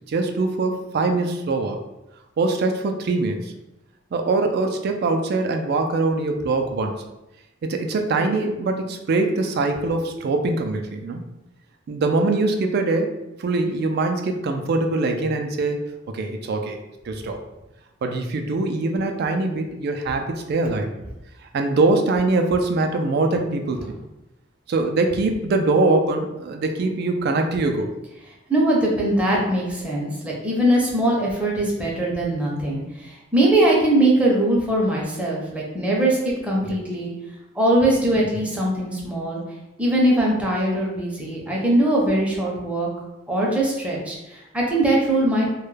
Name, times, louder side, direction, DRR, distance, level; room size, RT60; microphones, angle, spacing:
voice 1, 0.1-1.8 2.4-3.5 4.1-7.0 7.6-11.2 11.9-13.1 13.4-15.8 16.1-16.8 17.0-17.4 18.0-20.9 21.5-24.0 24.7-28.0 36.5-36.8 38.2-38.5, right 3 dB, 55° right, 5 dB, 0.3 m, -23 dB
voice 2, 28.5-37.1 37.5-39.4 39.8-42.9 43.3-45.5, right 1 dB, 5° right, -4 dB, 0.5 m, -21 dB
2.2 x 2.1 x 3.1 m, 0.94 s
head